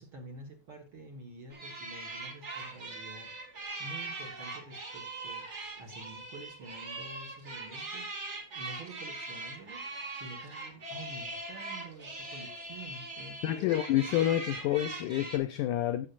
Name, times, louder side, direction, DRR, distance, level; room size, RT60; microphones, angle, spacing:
voice 1, 0.0-3.3 3.8-5.5 5.8-8.1 8.5-9.9 10.1-13.7, right 2 dB, 45° right, 1.8 m, -48 dB
sound 1, 1.5-15.4, right 2 dB, 30° right, 1.4 m, -41 dB
voice 2, 13.4-16.1, left 13 dB, 85° left, 1.7 m, -28 dB
13.5 x 8.5 x 2.6 m
omnidirectional pair, 4.2 m